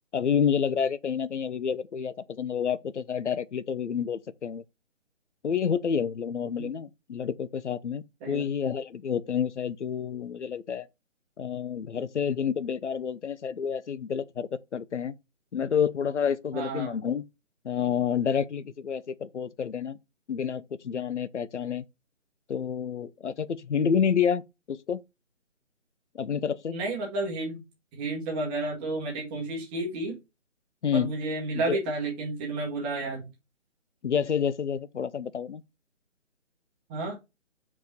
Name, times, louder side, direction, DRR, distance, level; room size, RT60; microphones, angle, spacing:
voice 1, 0.1-4.6 5.4-10.9 11.4-15.1 15.5-17.2 17.6-20.0 20.3-21.8 22.5-24.4 24.7-25.0 26.1-26.8 30.8-31.1 31.5-31.8 34.0-35.6, left 7 dB, 65° left, 0.8 m, -29 dB
voice 2, 16.5-17.0 26.7-27.6 27.9-30.2 30.9-33.3 36.9-37.2, right 2 dB, 10° right, 1.2 m, -31 dB
6.1 x 4.9 x 4.2 m
hypercardioid pair, 165°, 38 cm